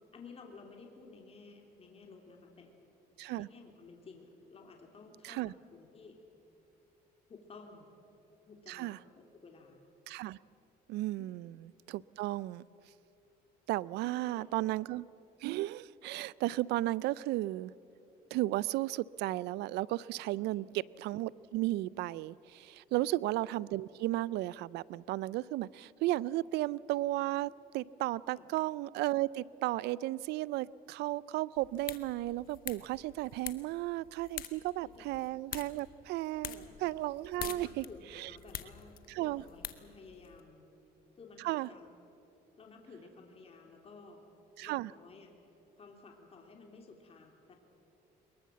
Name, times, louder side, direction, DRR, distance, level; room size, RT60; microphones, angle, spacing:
voice 1, 0.1-2.7 3.2-6.2 7.3-7.9 8.5-9.8 11.2-11.3 14.0-14.5 20.3-20.7 22.9-23.2 28.3-28.5 34.8-35.1 36.4-36.7 37.4-40.7 41.2-41.9 42.6-44.2 44.6-45.3 45.8-47.6, left 4 dB, 35° left, 2 dB, 3.0 m, -54 dB
voice 2, 8.7-9.0 10.1-10.4 10.9-11.6 11.9-12.6 13.7-15.0 15.4-17.7 18.3-37.8 38.2-38.3 39.1-39.4 41.4-41.7 44.6-44.9, right 17 dB, 85° right, 22 dB, 0.4 m, -34 dB
sound 1, 31.6-40.4, left 11 dB, 60° left, 1.2 m, -46 dB
22.5 x 21.5 x 7.5 m, 2.9 s
cardioid pair, 110°, 17 cm